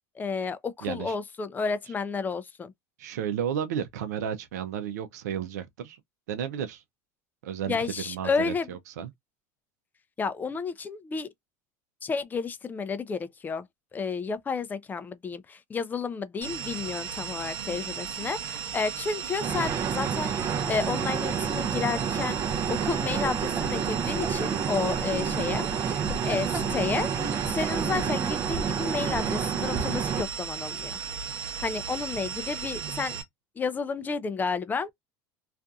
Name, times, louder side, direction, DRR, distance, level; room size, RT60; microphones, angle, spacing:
voice 1, 0.2-2.7 7.7-8.7 10.2-11.3 12.0-13.7 13.9-20.3 20.7-22.4 22.7-27.1 27.5-31.0 31.6-33.2 33.6-34.9, left 5 dB, 20° left, 0.4 m, -31 dB
voice 2, 0.8-1.2 3.0-6.0 6.3-6.8 7.4-9.1, right 9 dB, 90° right, 0.6 m, -33 dB
sound 1, 16.4-33.2, right 7 dB, 65° right, 0.8 m, -36 dB
sound 2, 19.4-30.2, right 7 dB, 35° right, 0.5 m, -29 dB
sound 3, 22.4-28.3, right 2 dB, 15° right, 1.0 m, -41 dB
2.6 x 2.4 x 2.3 m
supercardioid pair, 110°, 9 cm